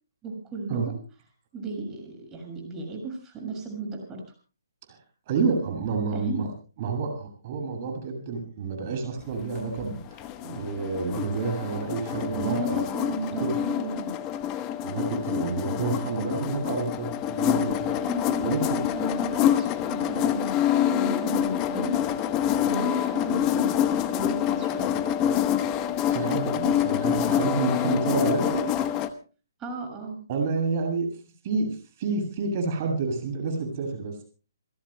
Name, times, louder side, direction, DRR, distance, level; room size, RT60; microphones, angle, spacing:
voice 1, 0.2-0.9 1.5-4.2 6.1-6.4 12.3-14.1 17.5-22.1 22.6-25.0 29.6-30.3, right 2 dB, 15° right, 2 dB, 6.7 m, -34 dB
voice 2, 5.3-6.5 6.8-12.8 13.4-13.6 14.8-17.9 18.4-18.8 26.1-28.7 30.3-31.1 31.4-34.2, right 4 dB, 35° right, 4 dB, 7.3 m, -29 dB
sound 1, 9.4-29.1, left 11 dB, 20° left, 1.1 m, -26 dB
29.5 x 17.5 x 2.2 m, 0.36 s
hypercardioid pair, 150°, 2 cm